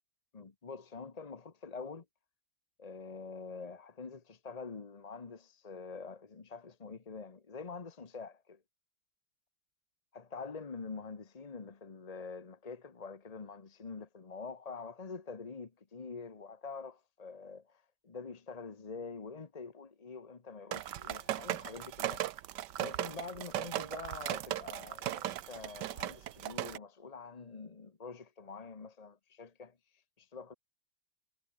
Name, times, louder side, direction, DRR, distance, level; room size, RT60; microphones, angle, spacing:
voice 1, 0.3-2.0 2.8-8.6 10.1-22.5 22.8-30.5, left 4 dB, 30° left, 0.7 m, -46 dB
sound 1, 20.7-26.8, right 13 dB, 65° right, 1.3 m, -37 dB
omnidirectional pair, 2.2 m